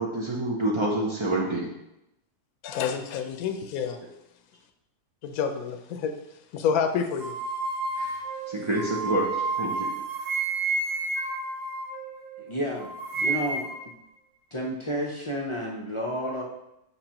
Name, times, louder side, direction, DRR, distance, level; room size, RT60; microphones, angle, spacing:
voice 1, 0.0-1.7 8.0-8.2 8.5-9.9, right 2 dB, 35° right, -3 dB, 0.4 m, -27 dB
voice 2, 2.6-4.0 5.2-6.1 6.5-7.4, left 7 dB, 70° left, 6 dB, 1.1 m, -28 dB
sound 1, 7.2-12.5 12.8-13.9, right 3 dB, 75° right, 1.7 m, -30 dB
voice 3, 12.4-13.7 14.5-16.4, equal, 30° left, -2 dB, 0.5 m, -31 dB
8.2 x 5.8 x 2.9 m, 0.86 s
omnidirectional pair, 1.7 m